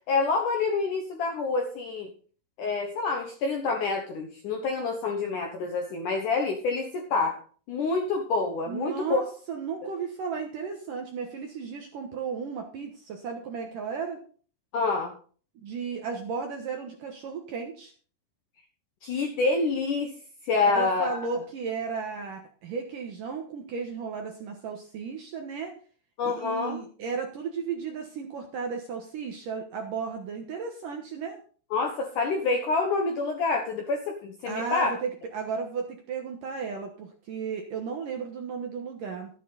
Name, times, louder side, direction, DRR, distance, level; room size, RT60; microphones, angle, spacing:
voice 1, 0.1-2.1 2.6-7.4 7.7-9.2 14.7-15.1 19.0-20.1 20.5-21.1 26.2-26.8 31.7-34.9, left 3 dB, 70° left, 2 dB, 2.0 m, -27 dB
voice 2, 8.7-14.2 15.6-17.9 20.7-25.7 26.2-31.4 34.5-39.3, right 5 dB, 65° right, 3 dB, 2.2 m, -34 dB
12.5 x 9.2 x 4.1 m, 0.42 s
omnidirectional pair, 5.3 m